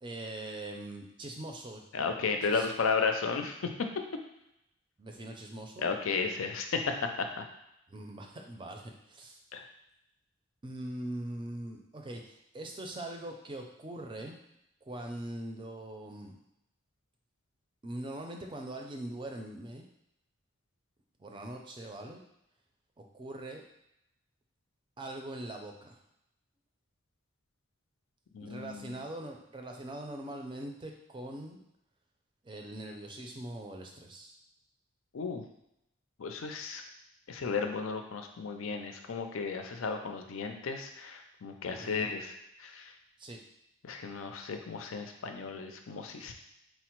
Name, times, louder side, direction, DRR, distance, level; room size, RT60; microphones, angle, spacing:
voice 1, 0.0-1.8 2.4-2.7 5.0-5.9 7.9-9.4 10.6-14.4 14.8-16.4 17.8-19.8 21.2-22.2 23.0-23.6 25.0-26.0 28.4-31.6 32.4-34.4 41.8-42.1 43.2-43.4, right 1 dB, 25° right, 2 dB, 0.4 m, -42 dB
voice 2, 1.9-3.7 5.8-7.4 9.5-9.6 28.3-29.0 35.1-35.4 36.2-36.8 37.3-42.9 43.8-46.3, left 5 dB, 85° left, 5 dB, 0.5 m, -34 dB
4.4 x 2.0 x 4.4 m, 0.83 s
head